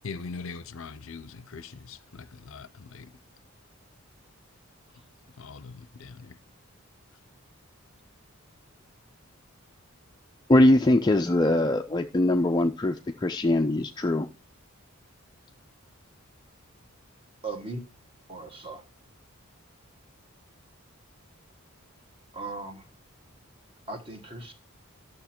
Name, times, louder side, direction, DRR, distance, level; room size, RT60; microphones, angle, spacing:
voice 1, 0.0-3.1 5.4-6.4, left 4 dB, 65° left, 0.6 m, -41 dB
voice 2, 10.5-14.3, left 1 dB, 20° left, 0.4 m, -22 dB
voice 3, 17.4-17.8 18.3-18.8 22.3-22.9 23.9-24.5, right 3 dB, 25° right, 1.5 m, -37 dB
12.0 x 6.5 x 4.4 m
head